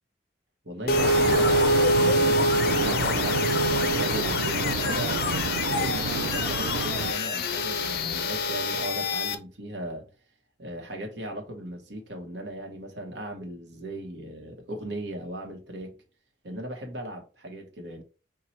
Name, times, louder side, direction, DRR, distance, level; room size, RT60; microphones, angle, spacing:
voice 1, 0.6-10.1 10.6-15.9 16.4-18.0, right 1 dB, 70° right, 1.0 m, -37 dB
sound 1, 0.9-9.4, left 2 dB, 55° left, 0.5 m, -25 dB
sound 2, 1.0-7.1, right 6 dB, 90° right, 0.3 m, -30 dB
4.4 x 2.3 x 4.1 m
head